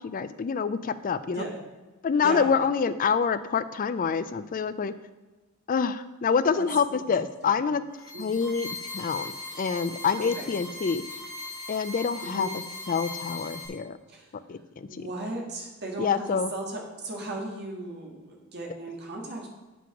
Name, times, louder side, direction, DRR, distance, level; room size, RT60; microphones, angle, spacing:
voice 1, 0.0-1.5 2.0-4.9 5.7-7.8 8.2-8.7 8.9-11.0 11.7-12.5 12.9-14.0 14.5-15.1 16.0-16.5, left 6 dB, 40° left, 12 dB, 0.4 m, -26 dB
voice 2, 2.2-2.5 6.5-6.6 7.0-7.1 7.4-7.6 8.1-8.2 10.2-10.5 12.2-12.5 14.1-14.2 14.9-19.5, right 2 dB, 50° right, 0 dB, 1.9 m, -36 dB
sound 1, 7.9-13.7, left 2 dB, 5° right, 2.7 m, -39 dB
7.7 x 6.1 x 5.9 m, 1.2 s
head